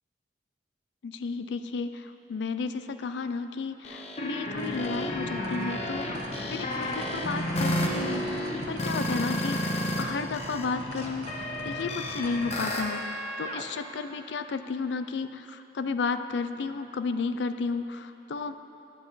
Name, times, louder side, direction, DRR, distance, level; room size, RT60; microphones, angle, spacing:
voice 1, 1.0-18.6, left 4 dB, 75° left, 10 dB, 0.4 m, -33 dB
sound 1, 3.8-10.0 10.3-13.6, left 1 dB, 35° left, 0.8 m, -31 dB
sound 2, 4.5-12.8, right 1 dB, 70° right, 1.1 m, -40 dB
11.5 x 9.0 x 4.0 m, 2.8 s
head